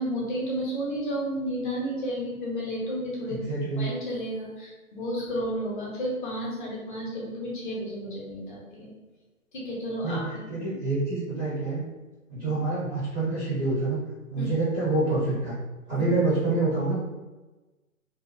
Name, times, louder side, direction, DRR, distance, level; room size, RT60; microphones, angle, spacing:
voice 1, 0.0-8.9 9.5-10.5 12.4-12.6 14.3-14.5 15.9-16.0, equal, 35° left, -3 dB, 0.8 m, -32 dB
voice 2, 3.3-3.9 10.0-10.2 10.5-11.8 12.3-14.0 14.3-15.5 15.9-16.9, right 2 dB, 15° right, -10 dB, 0.5 m, -26 dB
2.7 x 2.3 x 2.5 m, 1.2 s
figure-of-eight pair, 130°, 43 cm